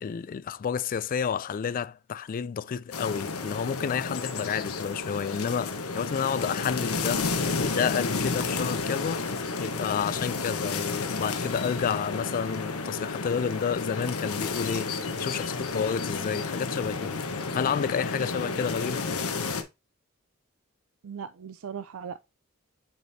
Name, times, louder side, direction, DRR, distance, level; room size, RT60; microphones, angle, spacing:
voice 1, 0.0-7.3 7.6-19.1, left 7 dB, 40° left, 0.3 m, -30 dB
sound 1, 2.9-19.6, left 4 dB, 85° left, 1.1 m, -31 dB
voice 2, 21.0-22.2, right 7 dB, 65° right, 0.4 m, -39 dB
7.8 x 5.1 x 2.7 m
head